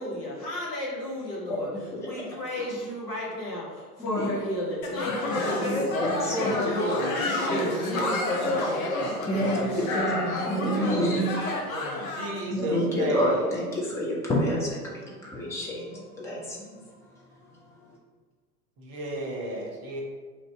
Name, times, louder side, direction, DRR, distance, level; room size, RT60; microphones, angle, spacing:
voice 1, 0.0-1.7 2.0-5.9 6.3-9.9, equal, 85° left, -5 dB, 1.3 m, -33 dB
voice 2, 1.9-2.6 4.0-4.3 5.6-6.6 9.3-11.5 12.5-18.0, equal, 5° left, -6 dB, 0.4 m, -29 dB
sound 1, 4.8-12.4, left 1 dB, 60° left, 0.8 m, -29 dB
voice 3, 11.7-13.4 18.8-20.0, right 1 dB, 30° right, 0 dB, 0.8 m, -33 dB
2.9 x 2.7 x 4.3 m, 1.5 s
figure-of-eight pair, 90°, 47 cm